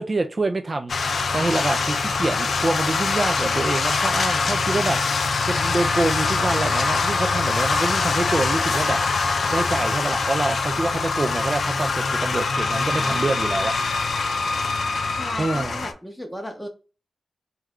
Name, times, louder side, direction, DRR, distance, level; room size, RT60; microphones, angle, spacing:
voice 1, 0.0-5.0 5.4-9.0 9.5-13.7 15.4-15.9, right 2 dB, 40° right, 6 dB, 0.4 m, -26 dB
sound 1, 0.9-15.9, left 4 dB, 75° left, 0.4 m, -23 dB
voice 2, 12.9-13.3 15.1-16.7, equal, 5° left, 2 dB, 0.7 m, -35 dB
3.1 x 2.3 x 3.5 m, 0.34 s
cardioid pair, 65°, 0 cm